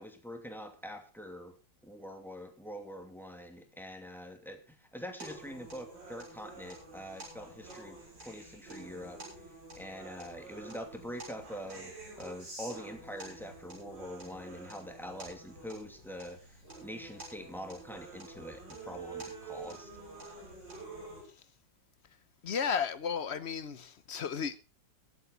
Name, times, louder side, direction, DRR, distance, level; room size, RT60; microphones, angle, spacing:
voice 1, 0.0-1.5 1.8-9.4 9.7-16.6 16.8-19.9, equal, ahead, 2.4 m, -44 dB
sound 1, 5.2-21.2, right 3 dB, 75° right, 7.2 m, -48 dB
voice 2, 22.4-24.6, left 7 dB, 50° left, 0.9 m, -33 dB
22.5 x 8.5 x 3.9 m
omnidirectional pair, 2.0 m